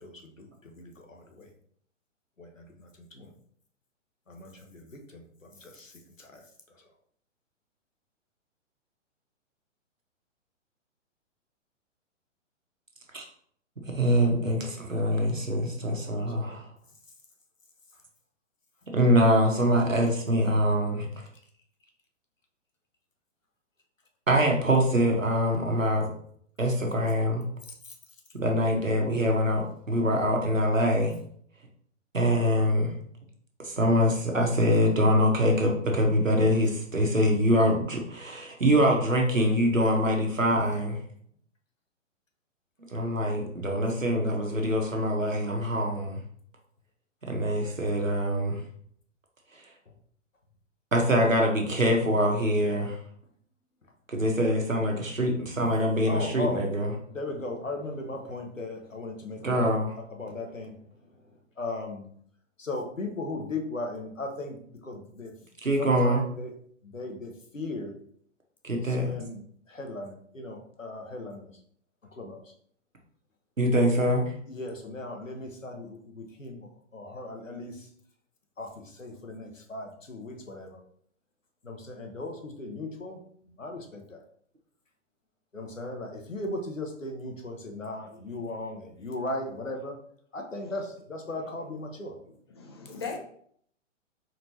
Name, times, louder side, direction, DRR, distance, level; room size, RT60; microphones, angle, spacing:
voice 1, 0.0-1.5 2.4-2.9 3.1-3.3 4.3-5.9 6.2-6.4 16.3-16.6 27.8-27.9 47.6-47.7 56.1-56.6 57.1-59.7 60.1-60.7 61.6-62.1 62.6-64.6 64.8-65.3 65.8-66.5 66.8-67.9 68.9-71.5 72.1-72.4 74.5-76.7 76.9-77.9 78.6-80.8 81.6-83.2 83.6-84.2 85.5-89.9 90.3-92.1, left 2 dB, 90° left, 2 dB, 1.0 m, -37 dB
voice 2, 13.9-16.7 18.9-21.1 24.3-26.1 26.6-27.4 28.3-31.1 32.1-32.9 33.6-41.0 42.9-46.2 47.2-48.6 49.5-49.6 50.9-53.0 54.1-56.9 59.4-59.9 65.6-66.2 68.6-69.1 73.6-74.3, equal, 90° right, 1 dB, 1.2 m, -24 dB
voice 3, 88.0-88.4 90.6-90.8 91.3-91.4 92.3-93.2, left 5 dB, 20° left, 1 dB, 0.4 m, -41 dB
4.2 x 3.1 x 2.8 m, 0.63 s
figure-of-eight pair, 120°, 38 cm